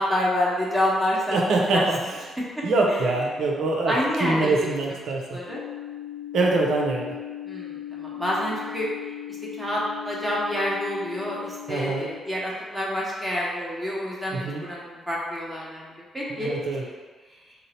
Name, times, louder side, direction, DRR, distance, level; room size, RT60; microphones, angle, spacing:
voice 1, 0.0-1.9 2.5-2.6 2.9-3.0 3.8-4.5 5.3-5.6 7.4-8.9 9.6-16.5, left 1 dB, 5° right, -6 dB, 1.2 m, -28 dB
voice 2, 1.3-2.0 2.6-3.9 4.2-5.4 6.3-7.2 11.7-12.1 14.3-14.6 16.3-16.8, right 3 dB, 65° right, -1 dB, 0.6 m, -24 dB
sound 1, 5.5-12.2, left 11 dB, 85° left, 0.7 m, -38 dB
3.8 x 2.1 x 4.1 m, 1.3 s
figure-of-eight pair, 40°, 0 cm